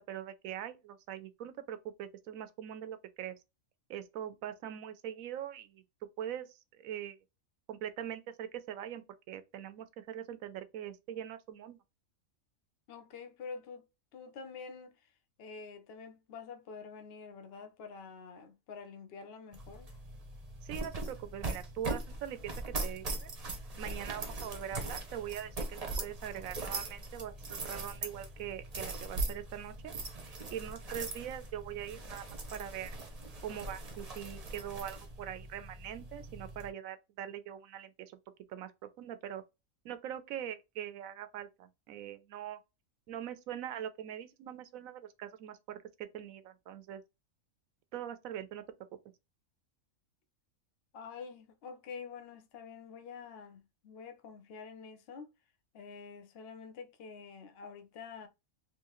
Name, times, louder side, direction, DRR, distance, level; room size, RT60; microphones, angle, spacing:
voice 1, 0.0-3.4 3.9-5.8 6.2-6.5 6.8-7.2 7.7-11.8 20.6-23.3 23.8-29.9 30.2-32.9 33.4-38.1 38.5-39.4 39.8-42.6 43.1-47.0 47.9-48.6, right 10 dB, 80° right, 1.0 m, -42 dB
voice 2, 12.9-13.8 14.1-15.0 15.4-20.0 50.9-55.3 55.7-58.3, left 5 dB, 55° left, 0.8 m, -47 dB
sound 1, 19.5-36.7, right 2 dB, 35° right, 0.7 m, -41 dB
3.6 x 2.8 x 3.0 m
omnidirectional pair, 1.4 m